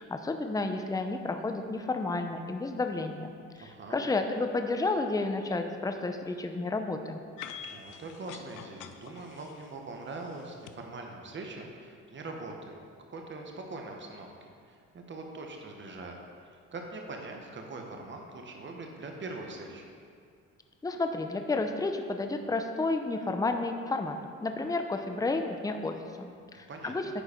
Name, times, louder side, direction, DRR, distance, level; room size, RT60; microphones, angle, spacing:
voice 1, 0.0-7.2 20.8-27.1, left 3 dB, 10° left, 6 dB, 0.6 m, -31 dB
voice 2, 3.6-4.0 7.6-12.8 13.1-16.2 16.4-19.8 26.5-26.9, right 2 dB, 40° right, 2 dB, 1.2 m, -42 dB
sound 1, 7.4-10.7, left 9 dB, 85° left, 0.6 m, -46 dB
10.0 x 4.7 x 5.1 m, 2.2 s
cardioid pair, 90°, 30 cm